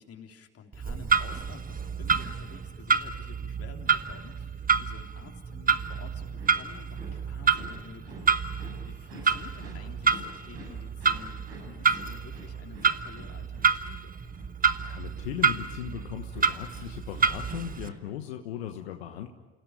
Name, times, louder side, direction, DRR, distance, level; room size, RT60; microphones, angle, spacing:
voice 1, 0.0-7.0 7.2-14.1, left 6 dB, 50° left, 3 dB, 3.3 m, -50 dB
Clock, 0.7-17.9, right 6 dB, 25° right, 1.2 m, -29 dB
sound 1, 6.2-18.0, right 1 dB, 85° right, 7.4 m, -49 dB
voice 2, 14.8-19.3, left 10 dB, 85° left, 5 dB, 1.3 m, -38 dB
28.5 x 17.0 x 9.1 m, 1.2 s
hypercardioid pair, 65°, 31 cm